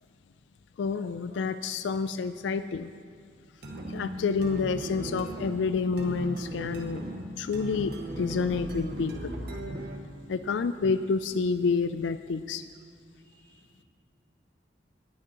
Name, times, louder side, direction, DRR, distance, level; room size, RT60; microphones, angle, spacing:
voice 1, 0.8-2.9 3.9-7.0 7.4-9.6 10.3-12.7, left 5 dB, 80° left, 11 dB, 0.4 m, -29 dB
sound 1, 3.6-10.1, right 1 dB, 60° right, 1.5 m, -37 dB
voice 2, 13.2-13.8, right 1 dB, 15° left, -4 dB, 2.1 m, -63 dB
19.0 x 9.5 x 3.0 m, 2.3 s
head